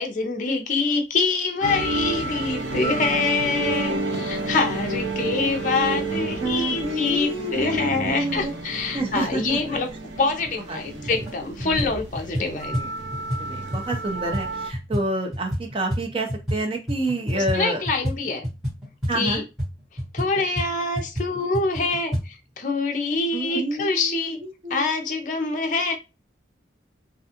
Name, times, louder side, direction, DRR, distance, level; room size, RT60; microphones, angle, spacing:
voice 1, 0.0-9.9 10.2-12.8 17.3-18.5 19.1-19.4 20.1-24.4 24.7-26.0, left 3 dB, 45° left, 4 dB, 0.5 m, -25 dB
sound 1, 1.6-14.7, right 2 dB, 90° right, 0.6 m, -30 dB
voice 2, 6.1-8.5 8.9-9.8 10.7-11.2 11.6-12.0 12.7-12.9 13.4-17.8 19.1-19.4 23.3-24.9, right 1 dB, 30° right, 3 dB, 0.6 m, -29 dB
sound 2, 10.4-10.5 11.0-11.3 11.6-16.6 16.9-22.2, equal, ahead, 1.1 m, -30 dB
2.4 x 2.2 x 2.8 m, 0.27 s
head